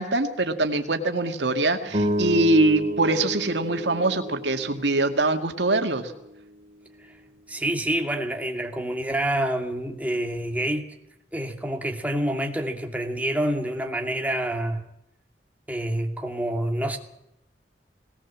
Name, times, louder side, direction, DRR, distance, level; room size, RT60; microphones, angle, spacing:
voice 1, 0.0-6.1, right 2 dB, 85° right, 5 dB, 2.1 m, -23 dB
sound 1, 1.9-6.4, right 1 dB, 35° right, 3.5 m, -31 dB
voice 2, 7.5-10.8 11.3-14.9 15.7-17.0, right 1 dB, 10° right, 3 dB, 2.4 m, -27 dB
20.0 x 18.5 x 7.4 m, 0.82 s
head